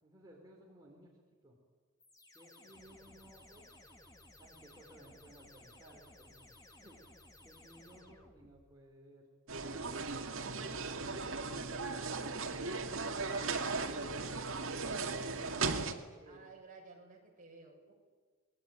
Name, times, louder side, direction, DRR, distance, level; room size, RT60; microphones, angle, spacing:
voice 1, 0.0-1.1 1.4-1.6 2.3-3.7 4.4-7.0 7.4-9.3 11.3-11.5 16.2-16.5, right 1 dB, 20° right, -2 dB, 4.3 m, -59 dB
sound 1, 2.0-8.8, left 1 dB, 15° left, 2.6 m, -59 dB
sound 2, 9.5-15.9, right 4 dB, 65° right, 2.3 m, -37 dB
voice 2, 15.4-15.7 16.3-17.9, right 3 dB, 40° right, 0 dB, 6.7 m, -54 dB
27.0 x 21.0 x 9.2 m, 1.5 s
head